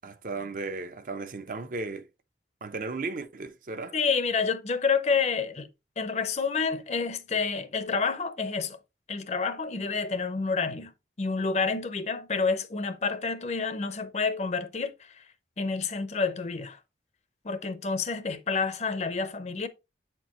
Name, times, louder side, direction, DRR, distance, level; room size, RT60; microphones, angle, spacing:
voice 1, 0.0-2.1 2.6-3.9, right 3 dB, 50° right, 0.6 m, -35 dB
voice 2, 3.9-5.7 6.0-8.8 9.1-10.9 11.2-15.2 15.6-16.8 17.4-19.7, left 5 dB, 40° left, 0.5 m, -29 dB
7.8 x 4.4 x 3.0 m
head